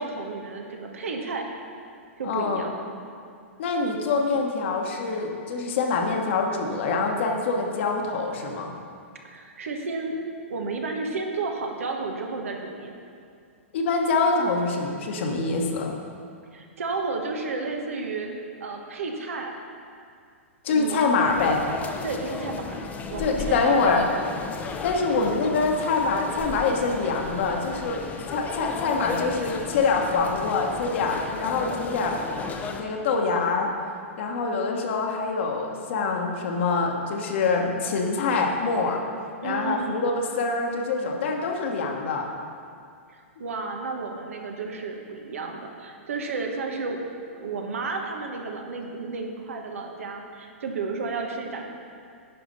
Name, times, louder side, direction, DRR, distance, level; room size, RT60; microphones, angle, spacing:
voice 1, 0.0-1.5 2.2-2.7 9.2-13.0 16.5-18.3 18.6-19.5 20.7-21.0 22.0-22.8 23.1-24.2 39.4-40.1 43.1-47.0 47.3-51.6, right 3 dB, 75° right, 2 dB, 1.3 m, -32 dB
voice 2, 2.2-2.6 3.6-8.7 13.7-16.0 20.6-21.6 23.2-24.0 24.8-28.0 28.3-32.2 32.8-33.7 34.2-39.0 39.4-42.3, left 4 dB, 60° left, 1 dB, 1.3 m, -25 dB
sound 1, 21.3-32.8, left 4 dB, 20° left, 0.7 m, -35 dB
10.0 x 4.9 x 5.5 m, 2.3 s
hypercardioid pair, 120°, 7 cm